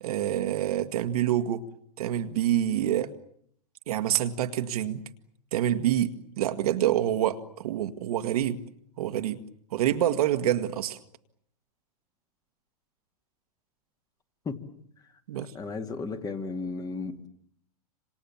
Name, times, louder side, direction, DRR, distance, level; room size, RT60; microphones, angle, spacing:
voice 1, 0.0-1.6 2.0-3.1 3.9-5.0 5.5-6.1 6.4-8.6 9.0-9.4 9.7-11.0 15.3-15.5, right 11 dB, 70° right, 1.8 m, -26 dB
voice 2, 15.4-17.3, left 4 dB, 20° left, 2.3 m, -34 dB
27.0 x 27.0 x 7.2 m
hypercardioid pair, 125°, 20 cm